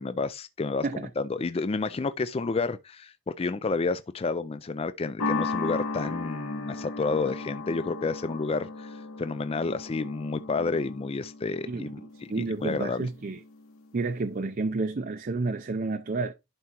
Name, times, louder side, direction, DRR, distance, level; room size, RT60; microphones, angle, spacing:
voice 1, 0.0-0.9 1.2-13.1, left 3 dB, 25° left, 0.3 m, -30 dB
sound 1, 5.2-13.7, left 3 dB, 90° left, 2.3 m, -36 dB
voice 2, 12.3-13.4 13.9-16.3, right 3 dB, 40° right, 0.5 m, -30 dB
11.0 x 4.5 x 2.9 m
head